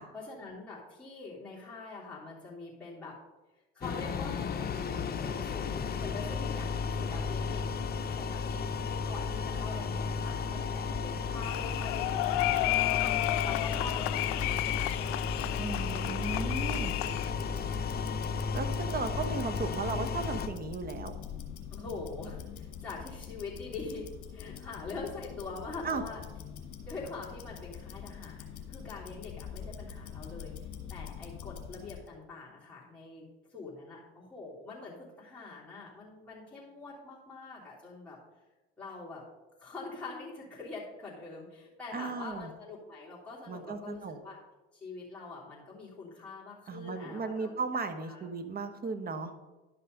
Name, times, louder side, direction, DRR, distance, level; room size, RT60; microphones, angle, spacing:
voice 1, 0.1-3.2 3.7-7.6 8.1-13.1 13.4-15.2 21.7-26.2 26.8-38.2 38.8-39.2 39.6-44.4 44.7-47.6 48.1-48.3, left 3 dB, 5° left, -9 dB, 3.1 m, -44 dB
sound 1, 3.8-20.5, left 5 dB, 30° left, 0.9 m, -34 dB
sound 2, 11.4-17.3, left 16 dB, 65° left, 0.5 m, -32 dB
Tick-tock, 12.2-32.1, left 8 dB, 45° left, 1.8 m, -45 dB
voice 2, 15.6-16.9 18.5-21.2 25.8-26.0 41.9-42.5 43.5-44.2 46.7-49.3, right 4 dB, 30° right, 8 dB, 1.2 m, -36 dB
11.0 x 5.5 x 5.3 m, 1.1 s
hypercardioid pair, 85°, 31 cm